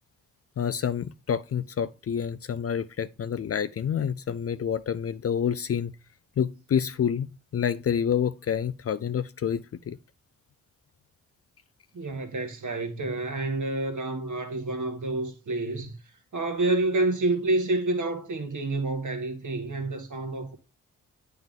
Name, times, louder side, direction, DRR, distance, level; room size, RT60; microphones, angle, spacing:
voice 1, 0.6-5.9 6.4-10.0, left 8 dB, 40° left, 0.4 m, -28 dB
voice 2, 11.9-15.9 16.3-20.5, right 2 dB, 55° right, 1.6 m, -28 dB
8.8 x 3.4 x 3.6 m
supercardioid pair, 40°, 37 cm